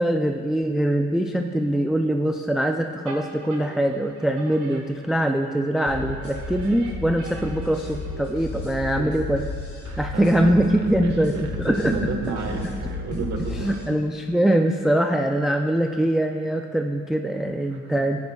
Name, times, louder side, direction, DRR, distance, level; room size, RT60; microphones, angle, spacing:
voice 1, 0.0-9.4 10.0-11.9 12.5-12.8 13.1-13.2 13.6-18.2, right 1 dB, ahead, 4 dB, 0.3 m, -23 dB
sound 1, 3.0-5.4 5.8-8.6, right 3 dB, 85° right, 1.8 m, -42 dB
sound 2, 5.9-13.8, left 3 dB, 80° left, 2.1 m, -33 dB
voice 2, 9.8-13.9 17.7-18.0, right 4 dB, 65° right, 2 dB, 1.4 m, -31 dB
13.5 x 9.6 x 2.3 m, 2.2 s
cardioid pair, 90°, 30 cm